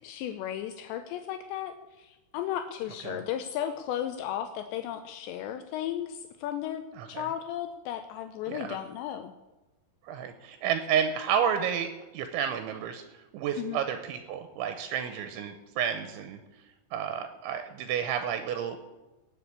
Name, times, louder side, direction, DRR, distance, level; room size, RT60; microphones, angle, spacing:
voice 1, 0.0-6.8 7.1-9.3 13.6-13.8, left 10 dB, 85° left, 8 dB, 2.6 m, -35 dB
voice 2, 10.1-16.4 16.9-18.9, right 8 dB, 80° right, 8 dB, 3.1 m, -31 dB
18.5 x 6.9 x 8.3 m, 1.1 s
omnidirectional pair, 5.7 m